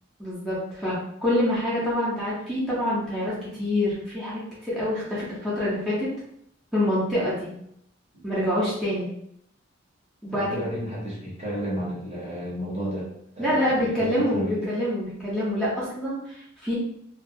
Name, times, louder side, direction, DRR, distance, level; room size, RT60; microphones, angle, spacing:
voice 1, 0.2-6.1 6.7-7.5 8.2-9.1 10.2-10.6 13.4-16.7, left 1 dB, 5° left, -9 dB, 0.7 m, -26 dB
voice 2, 10.3-14.6, equal, 35° right, -5 dB, 0.9 m, -33 dB
2.3 x 2.3 x 2.6 m, 0.72 s
head